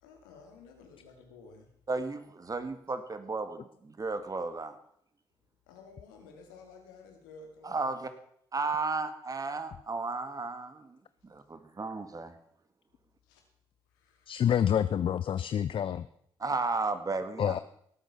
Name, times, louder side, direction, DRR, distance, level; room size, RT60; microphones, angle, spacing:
voice 1, 0.0-1.7 5.7-7.9 13.2-13.4 13.9-14.5, left 4 dB, 90° left, 3 dB, 2.5 m, -53 dB
voice 2, 1.9-4.8 7.6-8.1 8.5-12.3 16.4-17.6, right 3 dB, 35° right, 10 dB, 1.9 m, -34 dB
voice 3, 14.3-16.1 17.4-17.6, left 9 dB, 50° left, 14 dB, 0.5 m, -27 dB
18.0 x 8.1 x 5.6 m, 0.69 s
hypercardioid pair, 50°, 11 cm